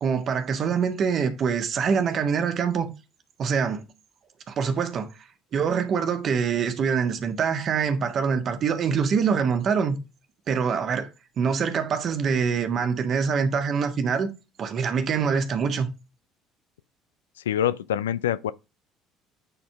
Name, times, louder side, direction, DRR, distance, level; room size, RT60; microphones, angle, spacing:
voice 1, 0.0-2.9 3.4-3.8 4.5-5.1 5.5-10.0 10.5-11.1 11.4-14.3 14.6-15.9, right 6 dB, 45° right, 1.6 m, -24 dB
voice 2, 17.5-18.5, left 10 dB, 75° left, 0.4 m, -25 dB
9.7 x 4.3 x 3.4 m
figure-of-eight pair, 55°, 0 cm